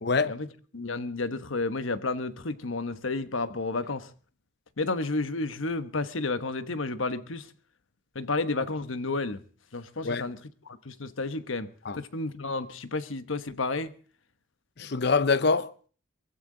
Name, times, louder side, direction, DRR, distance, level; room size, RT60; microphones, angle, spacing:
voice 1, 0.0-0.4 10.0-10.3 11.8-12.0 14.8-15.9, left 4 dB, 55° left, 0.8 m, -25 dB
voice 2, 0.7-4.1 4.8-7.5 8.1-9.4 9.7-10.4 10.6-13.9, left 3 dB, 75° left, 1.1 m, -31 dB
23.0 x 15.5 x 3.9 m
head